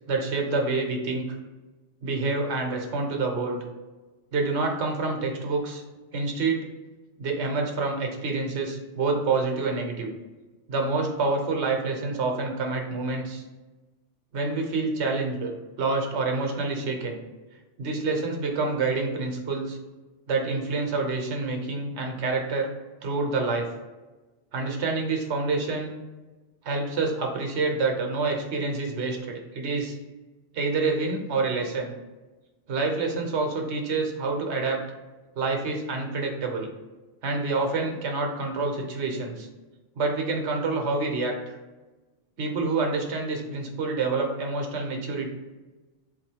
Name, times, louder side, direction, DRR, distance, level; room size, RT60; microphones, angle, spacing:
voice 1, 0.1-1.3 2.0-3.6 4.3-5.8 6.1-6.6 7.2-10.1 10.7-13.4 14.3-15.5 15.8-17.2 17.8-19.8 20.3-22.7 23.0-23.7 24.5-25.9 26.6-29.9 30.5-31.9 32.7-34.8 35.4-36.7 37.2-39.5 39.9-41.6 42.4-45.3, right 3 dB, 65° right, 2 dB, 1.1 m, -27 dB
4.1 x 2.6 x 4.4 m, 1.2 s
omnidirectional pair, 1.2 m